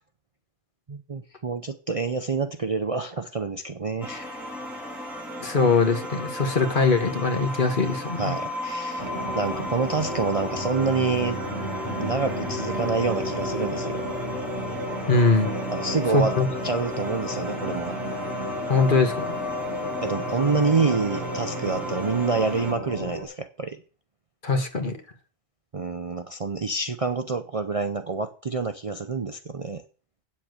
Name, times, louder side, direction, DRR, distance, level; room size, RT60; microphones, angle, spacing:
voice 1, 0.9-4.4 8.2-11.4 12.0-14.0 15.7-16.3 16.6-17.9 20.0-23.8 25.7-29.8, right 4 dB, 35° right, 8 dB, 0.6 m, -27 dB
sound 1, 4.0-22.7, left 1 dB, ahead, 2.7 m, -36 dB
voice 2, 5.4-8.3 15.1-15.5 16.1-16.5 18.7-19.4 24.4-25.0, left 4 dB, 45° left, 6 dB, 1.6 m, -22 dB
sound 2, 9.0-23.2, left 1 dB, 20° left, 5.6 m, -32 dB
8.7 x 7.5 x 7.8 m, 0.39 s
omnidirectional pair, 1.2 m